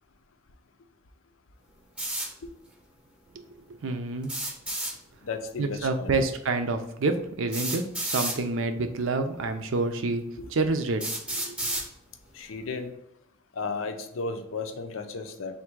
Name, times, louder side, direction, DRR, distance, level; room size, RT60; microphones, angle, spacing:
sound 1, 2.0-2.3 4.2-4.9 6.4-6.5 7.5-8.4 9.4-9.5 10.2-10.3 11.0-11.9, right 1 dB, 5° right, 0.7 m, -31 dB
voice 1, 3.8-4.3 5.6-10.2 10.5-11.0 11.3-11.8, right 3 dB, 75° right, 7 dB, 0.5 m, -28 dB
voice 2, 5.2-6.3 10.4-10.5 11.6-11.7 12.3-12.9 13.5-15.6, left 4 dB, 80° left, 7 dB, 0.5 m, -34 dB
3.5 x 2.6 x 4.5 m, 0.78 s
head